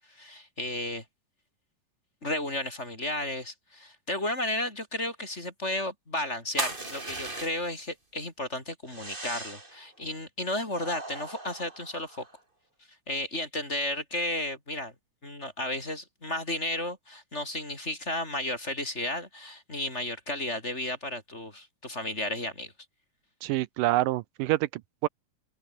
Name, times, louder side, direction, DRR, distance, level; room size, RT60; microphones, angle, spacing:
voice 1, 0.1-1.0 2.2-12.2 13.1-14.9 15.2-22.7, left 1 dB, 20° left, 4.0 m, -33 dB
Man lights a cigarette with a match, 6.6-7.8 8.9-9.8 10.7-12.4, right 2 dB, 15° right, 3.5 m, -37 dB
voice 2, 23.4-25.1, right 17 dB, 85° right, 2.3 m, -27 dB
open air
omnidirectional pair, 3.9 m